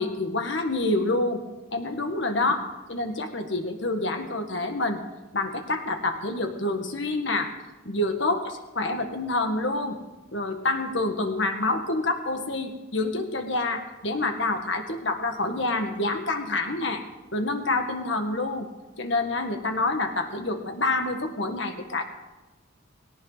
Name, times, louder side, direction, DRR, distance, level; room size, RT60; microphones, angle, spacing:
voice 1, 0.0-1.4 1.7-2.6 2.9-5.0 5.3-7.5 7.9-10.0 10.3-17.0 17.3-18.7 19.0-22.0, left 2 dB, 60° left, 5 dB, 1.8 m, -27 dB
18.5 x 17.5 x 4.1 m, 1.1 s
head